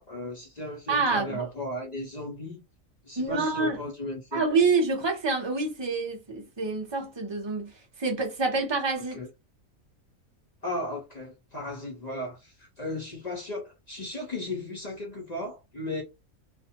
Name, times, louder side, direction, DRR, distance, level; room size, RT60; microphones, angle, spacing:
voice 1, 0.0-2.6 3.0-4.5 9.1-9.3 10.6-16.0, left 1 dB, 45° left, 0.6 m, -36 dB
voice 2, 0.9-1.5 3.2-3.8 4.3-7.7 8.0-9.2, right 4 dB, 30° right, 0.6 m, -27 dB
2.5 x 2.1 x 2.8 m
omnidirectional pair, 1.4 m